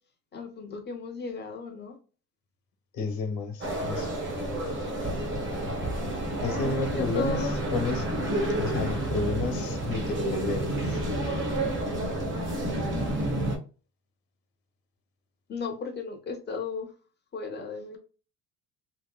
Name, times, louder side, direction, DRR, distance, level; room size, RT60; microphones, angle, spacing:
voice 1, 0.3-2.0 6.6-7.6 15.5-16.9 17.3-18.0, left 3 dB, 25° left, 0.7 m, -35 dB
voice 2, 2.9-4.1 6.4-7.4 7.7-8.0 8.5-11.0, left 4 dB, 65° left, 1.1 m, -31 dB
sound 1, 3.6-13.6, right 1 dB, 30° right, 0.9 m, -30 dB
3.1 x 2.9 x 2.2 m
cardioid pair, 155°, 38 cm